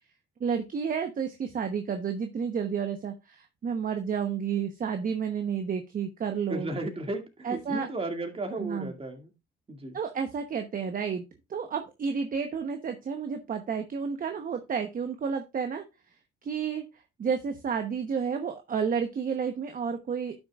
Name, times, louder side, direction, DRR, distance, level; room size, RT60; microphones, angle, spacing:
voice 1, 0.4-6.7 7.4-7.9 8.6-8.9 9.9-11.2 11.5-15.8 16.4-16.8 17.2-20.3, right 6 dB, 45° right, 6 dB, 1.0 m, -31 dB
voice 2, 6.5-9.3 9.7-10.0, right 2 dB, 30° right, 4 dB, 2.2 m, -34 dB
11.0 x 6.3 x 2.4 m, 0.25 s
cardioid pair, 90°, 20 cm